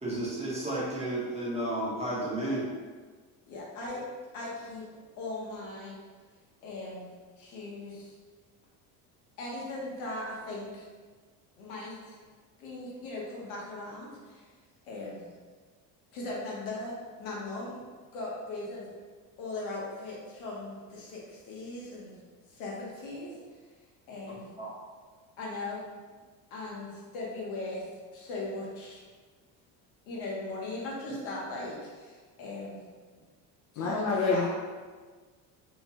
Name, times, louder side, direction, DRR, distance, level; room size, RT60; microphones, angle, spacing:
voice 1, 0.0-2.7 24.6-24.7 31.1-31.2, right 1 dB, 15° right, -7 dB, 0.9 m, -32 dB
voice 2, 3.5-4.0 4.3-4.8 5.2-6.0 6.6-7.1 7.4-8.1 9.4-10.9 11.6-12.2 12.6-14.4 14.8-15.3 16.1-17.8 18.1-18.9 19.4-22.2 22.5-23.4 24.1-24.5 25.4-25.8 26.5-27.8 28.1-29.0 30.1-32.8 33.7-34.5, left 2 dB, 85° left, -4 dB, 0.9 m, -38 dB
voice 3, 33.8-34.5, left 4 dB, 45° left, -3 dB, 0.5 m, -27 dB
2.8 x 2.1 x 2.8 m, 1.4 s
supercardioid pair, 100°, 41 cm